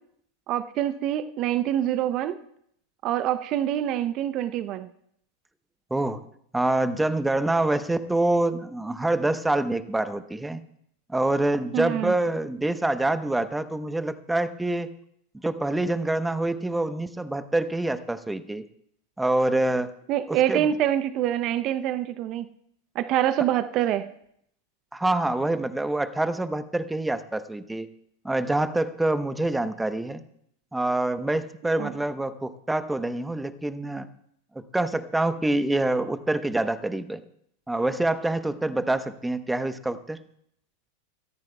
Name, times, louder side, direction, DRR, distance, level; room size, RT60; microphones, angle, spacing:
voice 1, 0.5-2.4 3.0-4.9 11.7-12.1 20.1-22.5 22.9-24.1 31.8-31.9, right 11 dB, 45° right, 13 dB, 0.6 m, -25 dB
voice 2, 5.9-6.2 6.5-10.6 11.1-14.9 15.4-18.6 19.2-19.9 20.3-20.7 24.9-27.9 28.2-30.2 30.7-34.1 34.5-37.2 37.7-40.2, right 2 dB, 5° right, 12 dB, 0.9 m, -26 dB
26.0 x 14.0 x 2.3 m, 0.70 s
hypercardioid pair, 95°, 0 cm